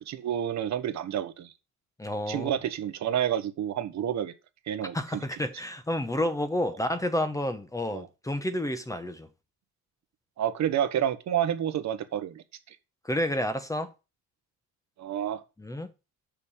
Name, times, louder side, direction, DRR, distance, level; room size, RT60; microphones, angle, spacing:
voice 1, 0.1-1.5 2.3-4.3 4.7-5.2 7.9-8.1 10.4-12.8 15.0-15.4, right 10 dB, 55° right, 1.2 m, -29 dB
voice 2, 2.0-2.5 4.9-9.3 13.0-13.9 15.6-15.9, left 1 dB, 10° left, 1.0 m, -30 dB
7.0 x 5.3 x 7.2 m
cardioid pair, 120°, 34 cm